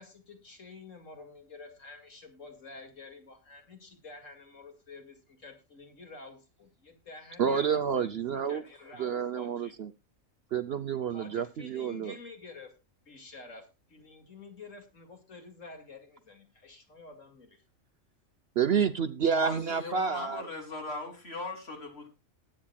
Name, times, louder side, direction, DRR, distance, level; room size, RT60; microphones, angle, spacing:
voice 1, 0.0-8.2 8.5-9.7 11.1-12.7 13.1-17.6, left 3 dB, 70° left, 5 dB, 2.6 m, -49 dB
voice 2, 7.4-8.6 9.0-9.9 10.5-12.1 18.6-20.4, right 7 dB, 55° right, 11 dB, 0.9 m, -29 dB
voice 3, 19.4-22.1, left 3 dB, 50° left, 2 dB, 3.6 m, -39 dB
20.5 x 8.7 x 2.3 m, 0.26 s
omnidirectional pair, 1.4 m